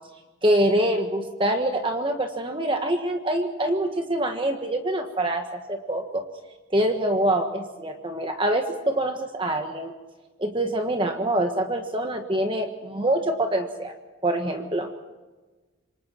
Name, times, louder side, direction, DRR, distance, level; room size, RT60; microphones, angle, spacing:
voice 1, 0.4-6.2 6.7-9.9 10.4-13.9 14.2-14.9, right 1 dB, 25° right, 4 dB, 1.4 m, -25 dB
27.5 x 24.0 x 4.5 m, 1.2 s
head